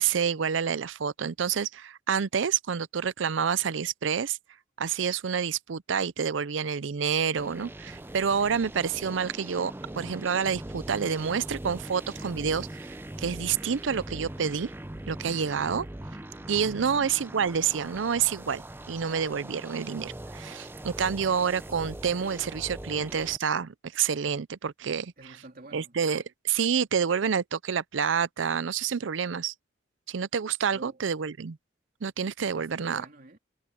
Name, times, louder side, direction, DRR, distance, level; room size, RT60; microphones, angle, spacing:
voice 1, 0.0-4.4 4.8-14.7 15.1-15.9 16.5-18.6 18.9-25.1 25.7-29.5 30.1-31.6 32.0-33.0, right 7 dB, 80° right, 0.5 m, -28 dB
sound 1, 7.4-23.4, right 1 dB, 10° right, 0.6 m, -41 dB
voice 2, 16.7-17.2 25.2-26.2 30.7-31.0 32.4-33.4, right 2 dB, 50° right, 3.0 m, -49 dB
head